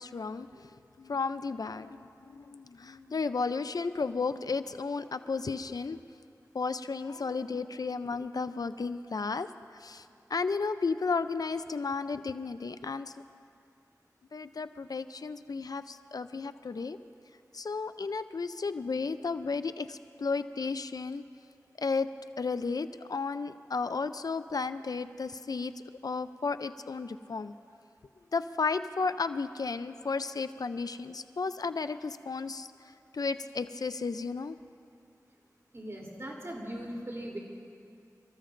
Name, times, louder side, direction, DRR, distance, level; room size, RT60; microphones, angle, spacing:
voice 1, 0.0-6.0 6.5-9.5 9.8-13.1 14.3-17.0 17.5-21.2 21.8-22.1 22.4-25.7 26.0-27.5 28.3-32.7 33.1-34.6, left 4 dB, 75° left, 11 dB, 0.4 m, -33 dB
voice 2, 35.7-37.4, right 1 dB, 45° right, -3 dB, 3.2 m, -39 dB
28.5 x 14.5 x 2.6 m, 2.5 s
wide cardioid pair, 50°, 7 cm